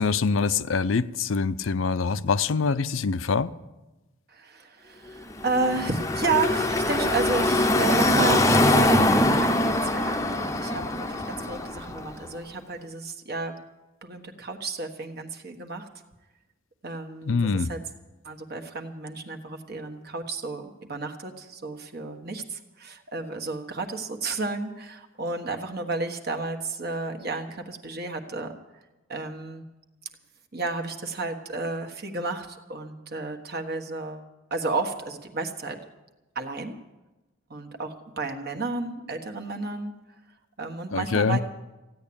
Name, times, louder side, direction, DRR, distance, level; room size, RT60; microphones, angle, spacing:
voice 1, 0.0-3.5 17.3-17.7 40.9-41.4, left 4 dB, 70° left, 0.6 m, -24 dB
voice 2, 4.3-13.6 14.0-15.9 16.8-17.8 18.2-28.5 29.1-29.6 30.5-35.8 36.3-36.8 37.5-39.9 40.6-41.4, right 3 dB, 50° right, 1.4 m, -32 dB
Car passing by / Traffic noise roadway noise, 5.3-12.2, left 1 dB, 15° left, 0.7 m, -23 dB
15.5 x 9.7 x 8.7 m
head